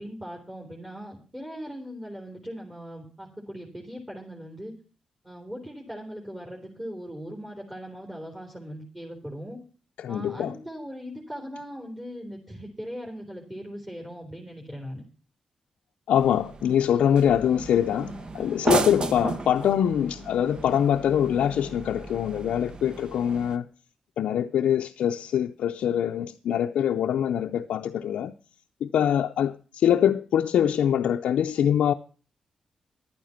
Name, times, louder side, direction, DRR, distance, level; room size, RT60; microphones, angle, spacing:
voice 1, 0.0-4.7 5.2-9.6 10.1-15.0, equal, 10° right, 3.5 m, -39 dB
voice 2, 10.0-10.5 16.1-23.6 24.2-28.3 28.8-31.9, left 9 dB, 85° left, 0.5 m, -24 dB
sound 1, 16.2-23.6, right 3 dB, 45° right, 1.0 m, -34 dB
11.0 x 9.3 x 5.7 m
cardioid pair, 55°, 2 cm